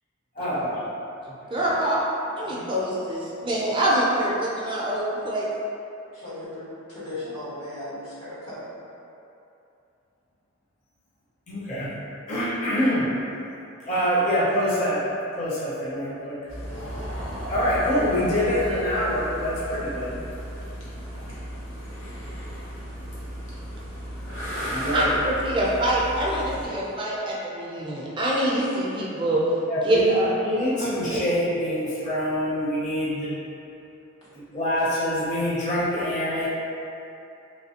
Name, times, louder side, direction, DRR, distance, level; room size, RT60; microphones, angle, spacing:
voice 1, 0.4-0.8 1.5-2.0 2.3-5.5 24.9-29.4 29.8-30.3 31.0-31.2, right 1 dB, 20° right, -5 dB, 0.4 m, -25 dB
voice 2, 6.1-8.6, left 1 dB, 85° left, -10 dB, 1.3 m, -37 dB
voice 3, 11.5-11.9 12.3-13.1 13.9-15.0 15.3-16.4 17.5-20.2 24.6-25.1 29.7-33.3 34.3-36.5, equal, 35° left, -8 dB, 0.6 m, -25 dB
sound 1, 16.5-26.7, equal, 60° left, 0.8 m, -34 dB
3.2 x 3.0 x 2.7 m, 2.8 s
head